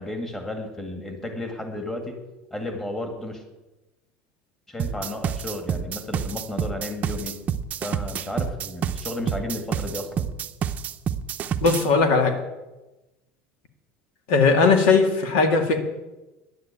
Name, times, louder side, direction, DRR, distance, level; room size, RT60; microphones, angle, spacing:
voice 1, 0.0-2.2 2.5-3.4 4.7-7.4 7.8-10.3, left 1 dB, 10° left, 4 dB, 2.0 m, -33 dB
sound 1, 4.8-11.9, right 8 dB, 30° right, 0.6 m, -28 dB
voice 2, 11.6-12.3 14.3-15.8, left 4 dB, 85° left, 6 dB, 2.2 m, -18 dB
11.0 x 9.8 x 9.0 m, 1.0 s
cardioid pair, 160°, 5 cm